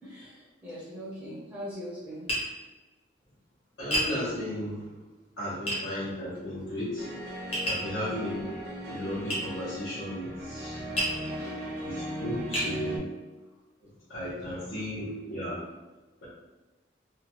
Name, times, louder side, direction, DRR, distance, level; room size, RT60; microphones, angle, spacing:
voice 1, 0.0-2.3 11.3-11.7 14.5-14.6, equal, 10° right, -8 dB, 0.6 m, -41 dB
Tap, 2.3-2.5 3.9-4.1 5.7-5.8 7.5-7.9 9.3-9.4 11.0-11.2 11.9-12.0 12.5-12.7, equal, 30° left, 0.9 m, -28 dB
voice 2, 3.8-4.9 5.4-7.1 7.6-8.5 8.9-10.9 11.8-13.0 13.8-15.6, equal, 70° left, -12 dB, 1.0 m, -35 dB
sound 1, 7.0-13.0, equal, 60° right, 0.6 m, -38 dB
2.8 x 2.3 x 2.9 m, 1.1 s
head